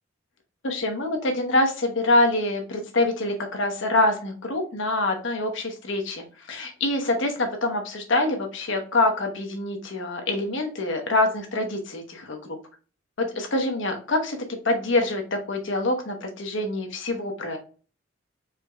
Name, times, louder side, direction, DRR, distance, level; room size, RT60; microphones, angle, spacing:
voice 1, 0.6-12.4 13.2-14.4 14.6-15.2 15.5-17.6, left 2 dB, 65° left, 3 dB, 1.0 m, -25 dB
4.6 x 3.4 x 2.3 m, 0.38 s
head